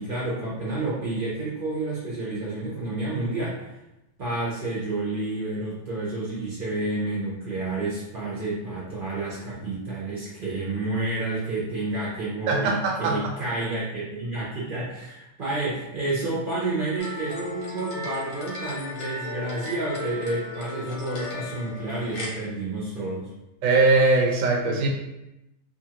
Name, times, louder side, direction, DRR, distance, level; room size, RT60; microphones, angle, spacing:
voice 1, 0.0-3.7 4.2-23.3, right 2 dB, 50° right, -7 dB, 0.7 m, -30 dB
voice 2, 12.5-13.3 23.6-24.9, right 3 dB, 80° right, 1 dB, 1.0 m, -21 dB
sound 1, 17.0-22.3, left 2 dB, 90° left, 1.2 m, -36 dB
2.7 x 2.4 x 2.8 m, 0.92 s
omnidirectional pair, 1.4 m